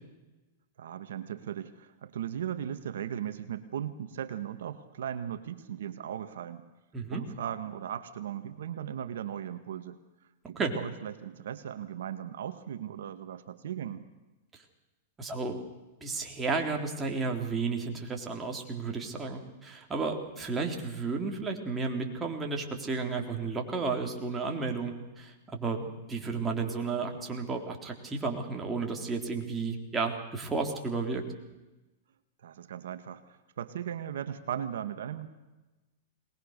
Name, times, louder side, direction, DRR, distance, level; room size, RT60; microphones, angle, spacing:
voice 1, 0.8-6.6 7.1-10.0 10.5-14.0 32.4-35.3, right 9 dB, 80° right, 11 dB, 1.4 m, -37 dB
voice 2, 15.2-15.6 16.0-31.2, right 4 dB, 15° right, 1 dB, 3.5 m, -32 dB
22.5 x 20.0 x 6.6 m, 1.1 s
hypercardioid pair, 130°, 0 cm